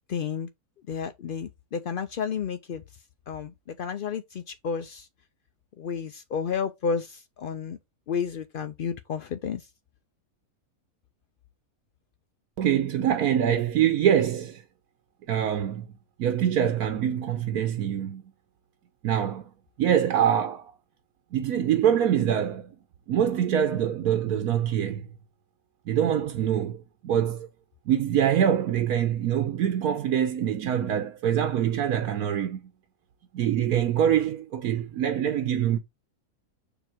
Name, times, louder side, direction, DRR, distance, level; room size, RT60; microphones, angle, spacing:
voice 1, 0.1-0.5 0.9-2.8 3.3-5.1 5.8-7.8 8.1-9.7, left 6 dB, 80° left, 0.4 m, -31 dB
voice 2, 12.6-14.6 15.3-15.9 16.2-18.2 19.0-19.5 19.8-20.7 21.3-22.8 23.1-25.1 25.9-27.5 27.9-32.6 33.3-35.8, right 9 dB, 85° right, 1.2 m, -24 dB
7.0 x 2.8 x 4.9 m
omnidirectional pair, 1.5 m